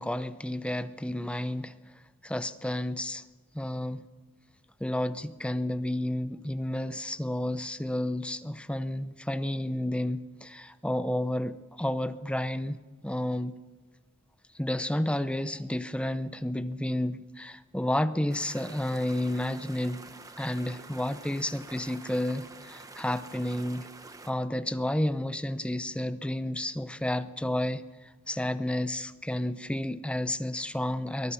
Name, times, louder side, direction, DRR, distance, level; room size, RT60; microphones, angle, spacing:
voice 1, 0.0-1.7 2.2-3.2 3.5-4.0 4.8-12.8 13.0-13.5 14.6-20.0 20.4-23.8 24.3-27.8 28.3-31.3, left 1 dB, 5° left, 0.7 m, -31 dB
sound 1, 18.3-24.3, right 3 dB, 15° right, 1.2 m, -48 dB
23.0 x 18.5 x 7.1 m
head